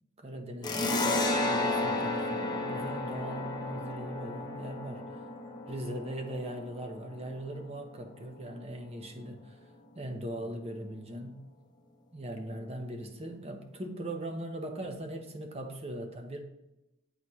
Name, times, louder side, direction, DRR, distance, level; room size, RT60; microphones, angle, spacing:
voice 1, 0.2-5.2 5.7-9.6 9.9-11.4 12.1-16.4, right 1 dB, 30° right, 4 dB, 0.9 m, -40 dB
sound 1, 0.6-7.8, left 2 dB, 20° left, 0.7 m, -33 dB
9.6 x 4.1 x 3.1 m, 0.94 s
head